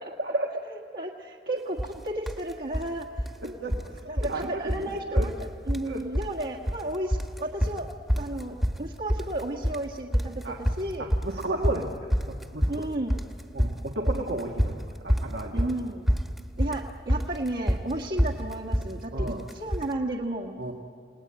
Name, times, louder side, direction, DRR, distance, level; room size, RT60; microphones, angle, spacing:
voice 1, 0.1-0.5 3.4-3.8 4.0-5.3 5.9-6.0 10.4-10.6 11.0-11.9 12.3-12.9 13.5-15.7 19.1-19.4 20.6-20.7, right 2 dB, 85° right, 0 dB, 1.8 m, -33 dB
voice 2, 0.6-3.5 4.1-7.9 8.2-11.1 12.7-13.2 15.5-16.1 16.6-20.6, right 1 dB, 60° right, -3 dB, 1.6 m, -33 dB
sound 1, 1.8-2.0 2.3-2.9 3.2-3.9 4.2-4.4 4.7-4.8 5.2-5.9 6.1-6.8 7.1-19.9, equal, ahead, 1.2 m, -27 dB
29.0 x 19.0 x 8.9 m, 2.3 s
head